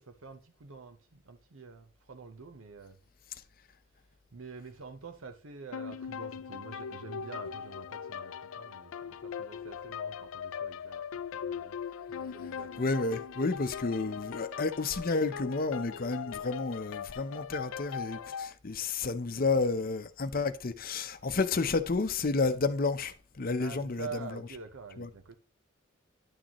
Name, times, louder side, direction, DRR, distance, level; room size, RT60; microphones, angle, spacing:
voice 1, 0.0-3.0 3.9-11.0 11.3-11.8 12.1-12.8 23.6-25.4, right 4 dB, 90° right, 0.8 m, -47 dB
sound 1, 5.7-18.5, left 7 dB, 85° left, 0.4 m, -40 dB
voice 2, 12.8-24.1 25.0-25.1, left 3 dB, 45° left, 0.6 m, -31 dB
11.0 x 6.3 x 3.0 m
head